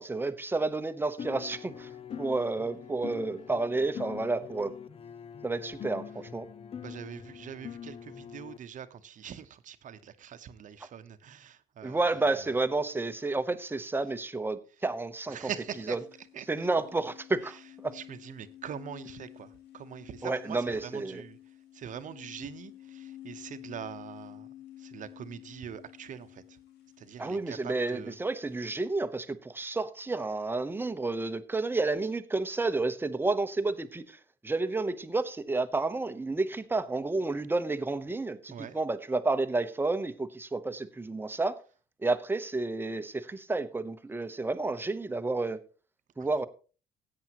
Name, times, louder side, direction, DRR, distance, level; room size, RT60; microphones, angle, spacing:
voice 1, 0.0-1.9 2.2-4.7 5.4-6.5 11.8-15.4 15.9-16.0 16.5-17.6 17.8-17.9 20.2-21.2 27.2-34.2 34.4-41.6 42.0-45.6 46.2-46.5, right 3 dB, 10° right, 0.9 m, -30 dB
sound 1, 1.2-8.6, left 8 dB, 35° left, 0.6 m, -43 dB
voice 2, 6.8-12.5 15.3-16.0 16.3-16.5 17.4-17.6 17.9-21.4 21.7-24.5 24.8-26.6 27.0-28.2 38.5-38.8 46.2-46.5, right 8 dB, 50° right, 0.9 m, -43 dB
sound 2, 15.5-28.8, left 13 dB, 70° left, 2.3 m, -51 dB
16.0 x 8.7 x 3.0 m
cardioid pair, 110°, 17 cm